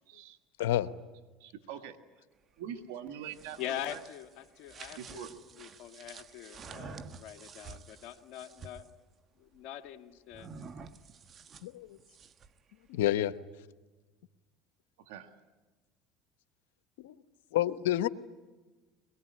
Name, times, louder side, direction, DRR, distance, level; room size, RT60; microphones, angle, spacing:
voice 1, 0.1-0.4 1.4-2.0 2.6-3.6 3.9-4.0 5.0-5.3 15.0-15.3, right 9 dB, 80° right, 7 dB, 1.9 m, -43 dB
voice 2, 0.6-0.9 11.6-12.0 12.9-13.4 17.0-17.2 17.5-18.1, left 13 dB, 90° left, 12 dB, 1.0 m, -29 dB
sound 1, 3.1-8.9 10.3-12.6, right 5 dB, 40° right, 1.3 m, -49 dB
voice 3, 3.6-8.9 9.4-10.5, left 11 dB, 65° left, 6 dB, 1.8 m, -43 dB
23.5 x 22.0 x 9.7 m, 1.2 s
supercardioid pair, 100°, 0 cm